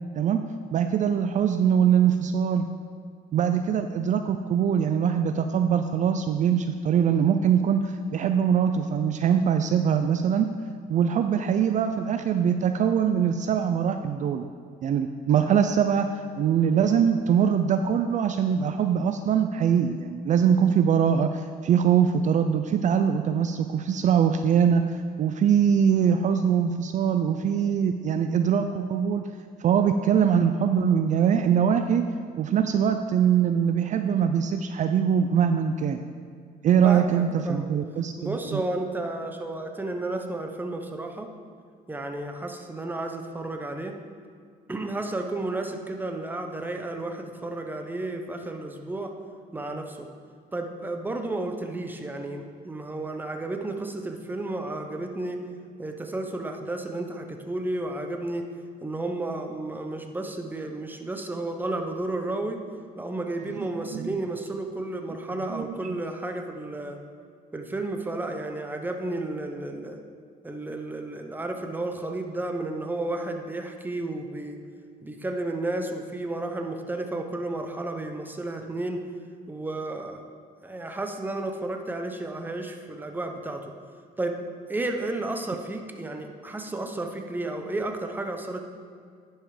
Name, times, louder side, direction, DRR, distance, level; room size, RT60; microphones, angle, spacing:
voice 1, 0.7-2.6 3.3-10.5 10.9-14.4 14.8-16.1 16.4-29.3 29.6-32.1 32.4-36.0 36.6-38.6 63.9-64.1 65.5-65.9, right 8 dB, 45° right, 7 dB, 0.4 m, -23 dB
voice 2, 36.8-37.7 38.2-41.3 41.9-43.9 44.7-49.1 49.5-50.1 50.5-55.4 55.8-58.4 58.8-62.6 63.0-67.0 67.5-70.0 70.4-74.6 75.0-79.0 79.5-80.2 80.6-83.7 84.2-84.3 84.7-88.6, right 2 dB, 10° right, 4 dB, 0.8 m, -32 dB
10.0 x 5.6 x 5.0 m, 2.1 s
cardioid pair, 110°, 17 cm